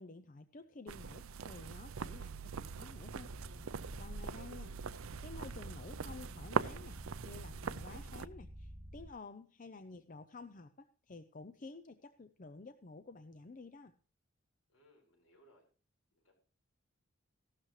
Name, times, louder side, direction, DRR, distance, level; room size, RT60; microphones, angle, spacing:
voice 1, 0.0-3.3 4.0-4.7 5.2-7.0 7.2-13.9, left 3 dB, 35° left, 10 dB, 0.6 m, -51 dB
sound 1, 0.9-8.3, right 5 dB, 70° right, 0.5 m, -42 dB
sound 2, 3.3-9.1, equal, ahead, 1.7 m, -51 dB
voice 2, 4.1-4.6 14.7-15.6 16.1-16.3, equal, 65° left, 0 dB, 5.9 m, -67 dB
15.0 x 12.0 x 3.2 m, 0.39 s
head